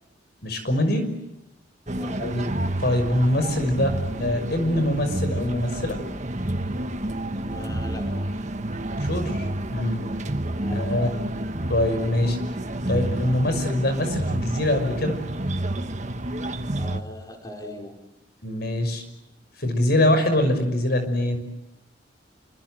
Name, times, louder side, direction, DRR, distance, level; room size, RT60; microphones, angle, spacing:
voice 1, 0.4-1.1 2.2-2.5 2.8-6.0 9.0-10.0 10.7-11.1 11.7-12.4 12.9-15.2 18.4-19.0 19.6-21.4, left 1 dB, 55° left, 8 dB, 6.1 m, -23 dB
voice 2, 1.8-2.4 7.4-8.1 10.6-11.1 16.7-18.0, left 1 dB, 20° left, 2 dB, 4.9 m, -40 dB
sound 1, 1.9-17.0, right 1 dB, 40° right, 1.6 m, -29 dB
28.5 x 25.5 x 8.0 m, 0.92 s
head